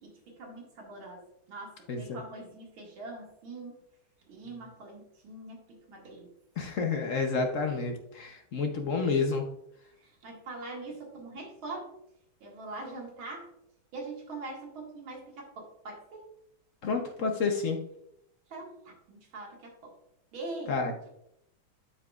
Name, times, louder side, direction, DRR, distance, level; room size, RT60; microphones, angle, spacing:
voice 1, 0.0-3.8 4.3-6.3 10.0-11.9 12.4-13.5 13.9-16.2 18.5-19.9 20.3-20.8, right 2 dB, 75° right, -1 dB, 2.6 m, -43 dB
voice 2, 6.6-9.5 16.8-17.8 20.7-20.9, left 4 dB, 60° left, 4 dB, 0.8 m, -29 dB
11.5 x 4.8 x 2.4 m, 0.75 s
omnidirectional pair, 2.3 m